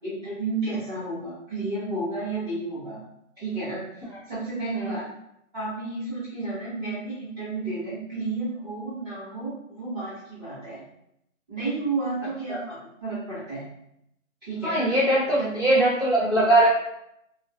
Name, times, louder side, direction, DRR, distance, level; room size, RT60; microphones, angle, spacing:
voice 1, 0.0-3.0 3.4-5.0 5.5-10.8 11.5-13.6 14.4-14.9 15.4-15.9 16.2-16.5, right 3 dB, 15° right, -17 dB, 0.7 m, -32 dB
voice 2, 14.6-16.7, right 1 dB, 20° left, -12 dB, 0.6 m, -21 dB
2.3 x 2.2 x 2.6 m, 0.78 s
hypercardioid pair, 160°, 41 cm